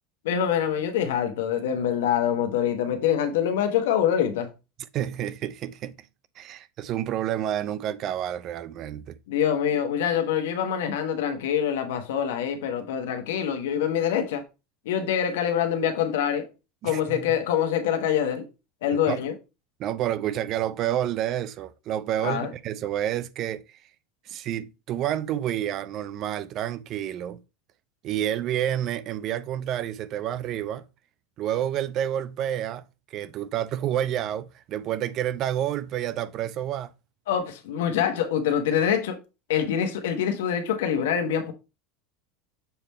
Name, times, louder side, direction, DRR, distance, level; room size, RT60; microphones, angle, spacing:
voice 1, 0.2-4.5 9.3-14.4 14.8-16.5 16.8-18.5 18.8-19.3 22.2-22.5 37.3-39.2 39.5-41.5, left 9 dB, 90° left, 1.2 m, -25 dB
voice 2, 4.9-6.0 6.4-9.2 16.8-17.4 19.1-19.2 19.8-23.8 24.3-27.4 28.0-30.9 31.4-36.9, right 11 dB, 45° right, 0.5 m, -29 dB
7.0 x 3.5 x 4.2 m
supercardioid pair, 135°, 0 cm